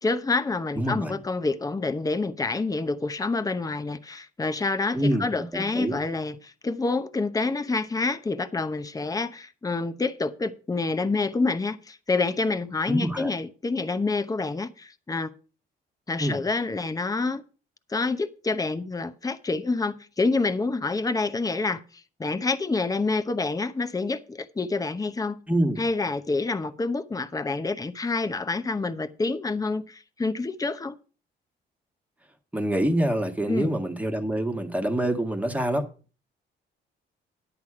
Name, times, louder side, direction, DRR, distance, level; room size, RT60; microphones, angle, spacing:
voice 1, 0.0-15.3 16.1-17.4 17.9-21.8 22.2-25.4 25.8-31.0 33.5-33.7, left 3 dB, 15° left, 0.8 m, -27 dB
voice 2, 0.7-1.2 4.9-6.0 12.9-13.3 16.2-16.4 25.5-25.8 32.5-35.9, right 1 dB, 5° right, 1.5 m, -26 dB
10.5 x 8.2 x 4.8 m
cardioid pair, 90°, 20 cm